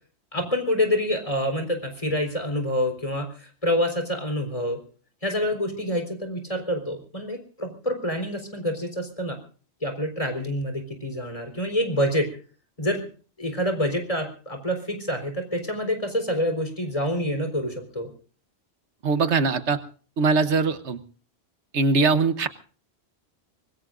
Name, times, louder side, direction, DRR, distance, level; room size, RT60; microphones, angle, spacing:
voice 1, 0.3-4.8 5.2-9.4 9.8-12.3 12.8-13.0 13.4-18.1, equal, 30° left, 4 dB, 4.1 m, -27 dB
voice 2, 19.0-19.8 20.2-21.0 21.7-22.5, right 4 dB, 85° right, 11 dB, 1.4 m, -21 dB
24.5 x 21.5 x 2.6 m, 0.40 s
omnidirectional pair, 1.1 m